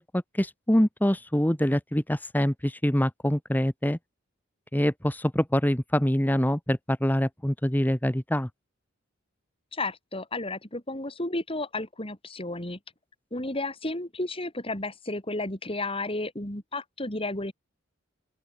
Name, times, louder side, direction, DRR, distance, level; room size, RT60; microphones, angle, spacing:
voice 1, 0.0-4.0 4.7-8.5, equal, 10° left, 1.2 m, -25 dB
voice 2, 9.7-12.8 13.3-17.5, left 2 dB, 30° left, 4.9 m, -32 dB
open air
head